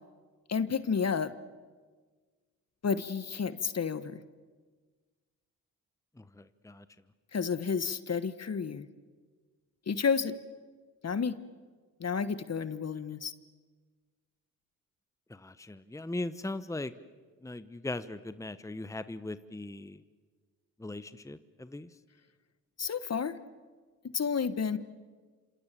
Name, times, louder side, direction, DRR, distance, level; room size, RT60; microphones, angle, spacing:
voice 1, 0.5-1.3 2.8-4.2 7.3-8.9 9.9-10.3 11.0-11.4 12.0-13.3 22.8-23.4 24.1-24.8, left 6 dB, 45° left, 14 dB, 1.4 m, -31 dB
voice 2, 6.2-6.8 15.3-16.9 17.4-20.0 20.8-21.9, left 2 dB, 10° left, 13 dB, 1.1 m, -39 dB
27.5 x 27.0 x 7.6 m, 1.5 s
supercardioid pair, 55°, 37 cm